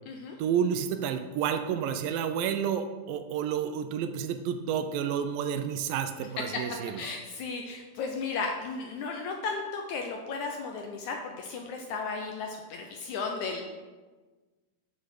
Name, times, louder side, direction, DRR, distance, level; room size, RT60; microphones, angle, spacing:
voice 1, 0.4-7.0, right 8 dB, 80° right, 8 dB, 2.2 m, -30 dB
voice 2, 7.0-13.7, left 4 dB, 80° left, 2 dB, 1.7 m, -35 dB
7.6 x 6.3 x 6.7 m, 1.3 s
omnidirectional pair, 4.3 m